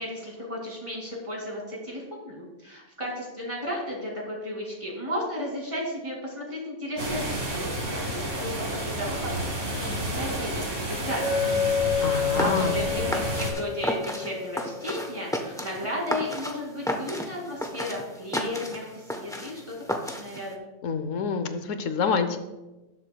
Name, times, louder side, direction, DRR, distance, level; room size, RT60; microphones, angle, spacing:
voice 1, 0.0-11.5 11.9-19.7 20.0-20.6, left 1 dB, 25° right, -2 dB, 2.5 m, -34 dB
sound 1, 7.0-13.5, right 1 dB, 70° right, 2.6 m, -31 dB
Chink clink, 11.2-15.2, left 7 dB, 60° left, 4.4 m, -29 dB
voice 2, 12.0-12.7 20.8-22.4, left 5 dB, 85° left, 9 dB, 1.1 m, -27 dB
sound 2, 12.1-20.5, left 1 dB, 5° left, 0.7 m, -34 dB
18.0 x 7.6 x 2.3 m, 1.1 s
omnidirectional pair, 1.3 m